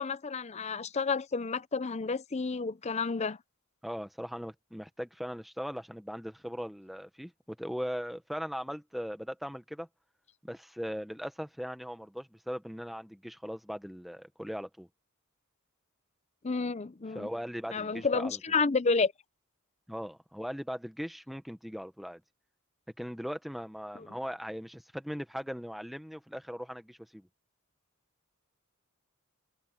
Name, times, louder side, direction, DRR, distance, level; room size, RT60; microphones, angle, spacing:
voice 1, 0.0-3.4 16.4-17.3 17.7-19.1 24.0-24.1, left 4 dB, 30° left, 0.5 m, -30 dB
voice 2, 3.8-9.9 10.4-14.9 17.1-18.4 19.9-22.2 23.0-27.3, equal, ahead, 1.1 m, -39 dB
head